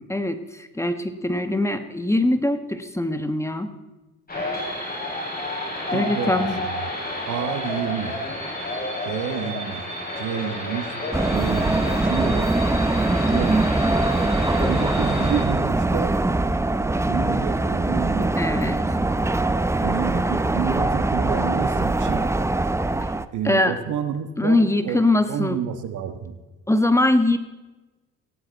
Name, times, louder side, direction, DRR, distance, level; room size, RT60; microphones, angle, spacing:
voice 1, 0.0-3.7 5.9-6.6 18.4-19.0 23.4-23.8 24.4-25.6 26.7-27.4, left 1 dB, 10° left, 9 dB, 1.2 m, -22 dB
sound 1, 4.3-15.4, left 1 dB, 30° left, 6.4 m, -30 dB
voice 2, 5.9-6.9 7.3-8.2 9.0-9.8 10.2-10.9 11.2-12.5 13.2-13.7 14.6-16.2 17.1-18.3 19.8-22.3 23.3-25.0 25.3-26.4, right 8 dB, 80° right, 8 dB, 1.5 m, -29 dB
sound 2, 11.1-23.2, right 2 dB, 10° right, 0.6 m, -22 dB
17.5 x 16.5 x 4.1 m, 1.2 s
cardioid pair, 90°, 30 cm